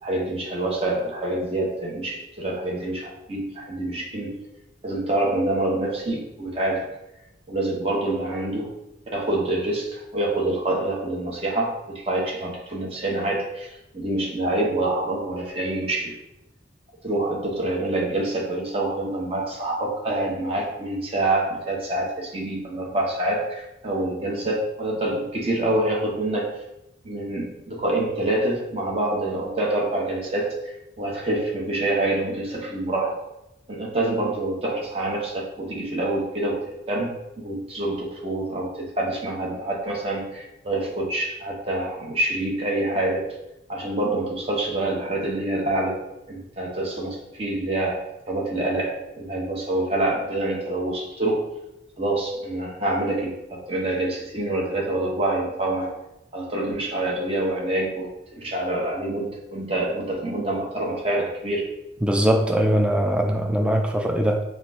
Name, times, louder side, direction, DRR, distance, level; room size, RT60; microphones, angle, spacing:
voice 1, 0.0-4.4 4.8-6.9 7.5-8.7 9.1-16.2 17.0-26.6 27.0-33.2 33.7-43.3 43.7-46.0 46.3-51.5 52.0-55.9 56.3-61.7, right 1 dB, 30° right, -3 dB, 0.9 m, -26 dB
voice 2, 62.0-64.4, equal, 5° right, 2 dB, 0.3 m, -21 dB
4.3 x 2.5 x 3.7 m, 0.88 s
head